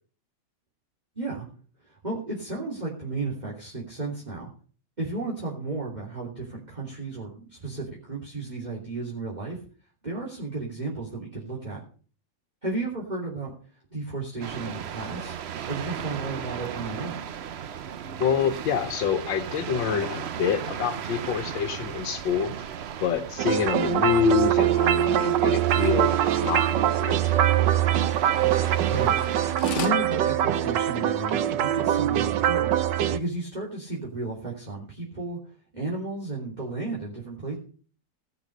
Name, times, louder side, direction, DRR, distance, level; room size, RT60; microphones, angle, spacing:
voice 1, 1.1-1.5 1.8-4.5 5.0-9.6 10.0-11.8 12.6-13.5 13.9-15.4 15.7-17.3 28.8-29.2 29.7-32.7 33.1-35.4 35.7-37.6, right 3 dB, 20° right, -4 dB, 3.2 m, -33 dB
sound 1, 14.4-29.6, right 8 dB, 90° right, 0.5 m, -36 dB
voice 2, 18.2-22.5 23.0-27.5, left 7 dB, 85° left, 7 dB, 1.7 m, -27 dB
sound 2, 23.4-33.2, right 11 dB, 75° right, 1.4 m, -23 dB
sound 3, 29.2-29.3 29.6-30.0 30.6-30.7 31.0-31.1 31.2-31.4 32.0-32.1, left 6 dB, 65° left, 1.8 m, -34 dB
17.0 x 6.8 x 6.6 m, 0.41 s
omnidirectional pair, 2.0 m